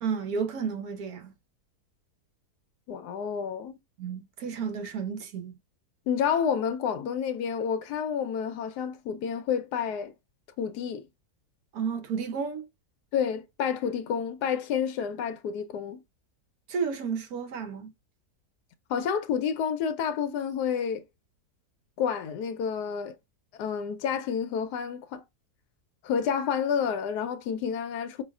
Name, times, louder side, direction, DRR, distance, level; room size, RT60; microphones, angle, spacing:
voice 1, 0.0-1.3 4.0-5.5 11.7-12.7 16.7-17.9, right 6 dB, 70° right, 1.2 m, -32 dB
voice 2, 2.9-3.8 6.1-10.1 10.6-11.0 13.1-16.0 18.9-21.0 22.0-23.1 23.6-25.2 26.0-28.2, left 7 dB, 90° left, 1.2 m, -29 dB
5.5 x 2.4 x 2.3 m
omnidirectional pair, 1.7 m